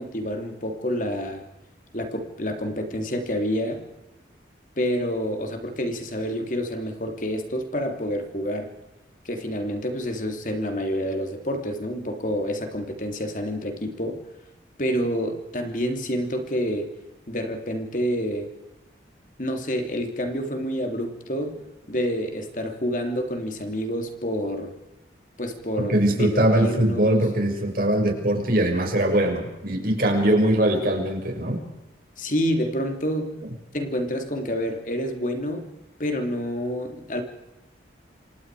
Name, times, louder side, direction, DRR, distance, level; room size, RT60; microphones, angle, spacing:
voice 1, 0.0-1.4 1.9-3.8 4.8-8.7 9.2-14.2 14.8-16.9 17.3-18.5 19.4-21.6 21.9-24.7 25.4-27.2 32.2-33.4 33.7-35.7 36.0-37.2, equal, 45° left, 5 dB, 3.1 m, -28 dB
voice 2, 25.8-31.6, right 1 dB, 50° right, 3 dB, 6.1 m, -21 dB
28.5 x 25.5 x 5.0 m, 0.96 s
head